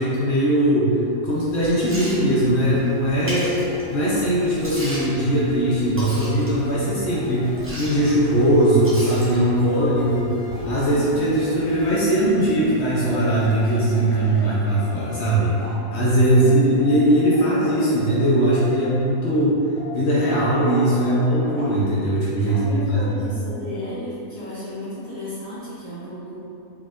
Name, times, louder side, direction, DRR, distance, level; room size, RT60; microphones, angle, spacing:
voice 1, 0.0-3.6 3.9-7.5 7.8-19.6 19.9-23.0, right 1 dB, 60° left, -7 dB, 0.9 m, -20 dB
Liquid, 1.3-13.6, equal, 15° right, 0.4 m, -38 dB
sound 1, 1.7-19.3 19.8-21.6, left 1 dB, 30° left, 0.7 m, -40 dB
voice 2, 15.6-16.0 16.3-16.6 22.4-26.4, left 1 dB, 30° right, -12 dB, 0.8 m, -33 dB
4.0 x 3.6 x 2.4 m, 2.7 s
omnidirectional pair, 1.5 m